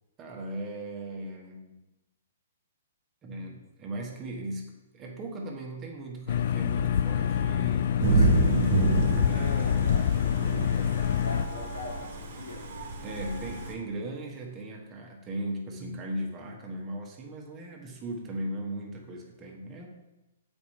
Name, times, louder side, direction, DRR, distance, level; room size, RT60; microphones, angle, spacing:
voice 1, 0.2-1.9 3.2-8.9 9.2-10.0 13.0-19.9, right 1 dB, 25° right, 0 dB, 1.2 m, -38 dB
sound 1, 6.3-11.5, left 9 dB, 55° left, 0.3 m, -26 dB
Wind instrument woodwind instrument, 6.6-13.9, left 7 dB, 15° left, 0.7 m, -46 dB
Thunder / Rain, 8.0-13.7, right 3 dB, 50° right, 1.2 m, -28 dB
voice 2, 9.1-10.1 10.7-13.2, left 2 dB, 80° left, -2 dB, 2.0 m, -41 dB
7.4 x 4.5 x 4.3 m, 1.0 s
figure-of-eight pair, 120°, 0 cm